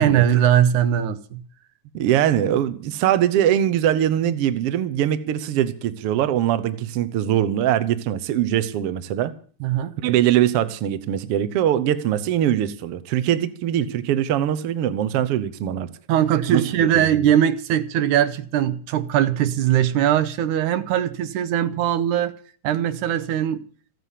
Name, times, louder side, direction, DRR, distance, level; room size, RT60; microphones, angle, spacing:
voice 1, 0.0-1.4 9.6-10.0 16.1-22.3 22.6-23.6, right 10 dB, 85° right, 2.4 m, -20 dB
voice 2, 1.9-9.3 10.0-15.9 16.5-17.3, right 11 dB, 65° right, 1.7 m, -22 dB
15.0 x 9.3 x 8.3 m
omnidirectional pair, 3.4 m